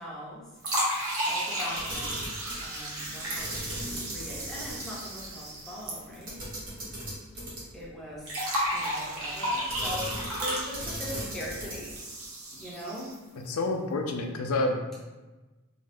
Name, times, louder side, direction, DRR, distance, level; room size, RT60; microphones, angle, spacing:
voice 1, 0.0-6.4 7.7-12.0 12.5-13.2, left 1 dB, ahead, -6 dB, 0.6 m, -41 dB
sound 1, 0.6-6.8 7.0-7.1 8.3-13.3, right 1 dB, 70° right, 0.9 m, -33 dB
Camera, 1.7-2.6 3.4-4.8 5.2-5.3 6.3-7.9 9.7-10.5 10.7-11.9, right 1 dB, 40° right, 0.9 m, -37 dB
voice 2, 13.5-15.0, left 2 dB, 70° left, 3 dB, 0.4 m, -29 dB
2.5 x 2.2 x 3.2 m, 1.2 s
head